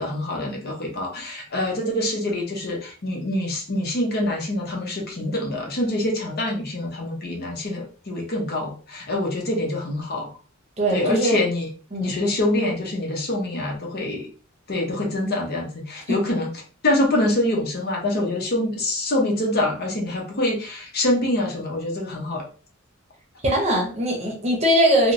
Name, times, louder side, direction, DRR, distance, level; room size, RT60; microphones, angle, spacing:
voice 1, 0.0-10.3 10.9-11.7 12.0-14.3 14.7-16.5 16.8-22.4, left 1 dB, 50° left, 0.7 m, -25 dB
voice 2, 10.8-11.4 11.9-12.1 16.1-16.2 23.4-25.1, equal, 30° right, 0.8 m, -21 dB
3.0 x 2.0 x 2.5 m
head